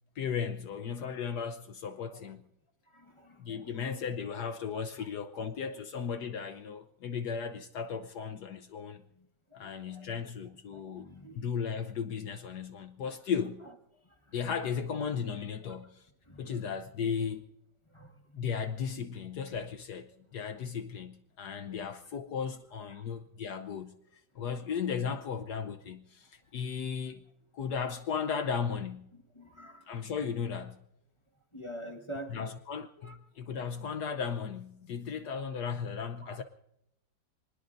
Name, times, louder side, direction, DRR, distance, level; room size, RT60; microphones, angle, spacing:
voice 1, 0.1-2.4 3.4-9.0 9.5-13.6 14.3-16.1 16.4-17.4 18.4-24.0 24.3-27.3 27.5-29.1 29.9-30.8 32.3-36.4, left 6 dB, 65° left, 1.3 m, -36 dB
voice 2, 2.9-4.0 5.0-5.1 5.7-5.8 8.5-8.6 9.1-11.5 13.6-14.4 15.6-15.8 16.2-16.7 17.9-18.7 21.6-21.8 22.9-23.1 24.4-24.9 29.1-30.1 31.5-32.5 33.0-33.2 36.2-36.4, right 1 dB, 15° left, 1.3 m, -49 dB
27.0 x 20.0 x 2.6 m
omnidirectional pair, 2.0 m